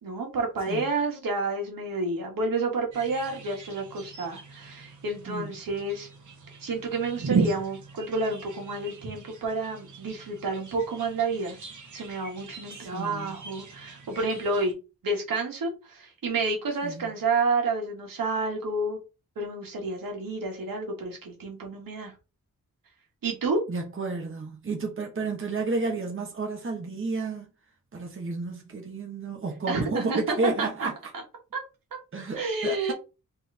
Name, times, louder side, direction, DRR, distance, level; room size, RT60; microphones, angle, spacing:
voice 1, 0.0-6.1 6.6-11.6 11.9-14.8 15.0-19.0 19.4-22.1 23.2-23.6 29.7-31.2 31.5-31.6 31.9-32.0 32.4-32.9, right 3 dB, 85° right, 1.8 m, -30 dB
sound 1, 2.9-14.7, right 4 dB, 60° right, 1.4 m, -37 dB
voice 2, 12.8-13.3 16.8-17.1 23.7-27.5 27.9-30.9 32.1-32.9, right 3 dB, 40° right, 1.3 m, -31 dB
3.9 x 3.5 x 3.4 m
cardioid pair, 85°, 33 cm